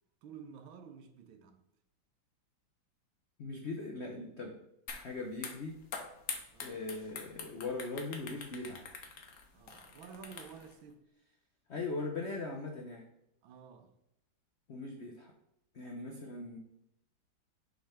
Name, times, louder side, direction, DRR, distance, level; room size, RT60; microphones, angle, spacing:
voice 1, 0.2-1.6 6.5-6.9 9.5-11.0 13.4-13.9 16.1-16.3, right 6 dB, 85° right, 1.6 m, -52 dB
voice 2, 3.4-4.6 4.9-5.8 6.6-8.9 11.7-13.0 14.7-15.3 15.7-16.6, left 3 dB, 70° left, 0.6 m, -40 dB
sound 1, 4.9-5.0 5.3-10.7, left 5 dB, 50° left, 1.1 m, -44 dB
6.1 x 5.1 x 3.5 m
omnidirectional pair, 2.2 m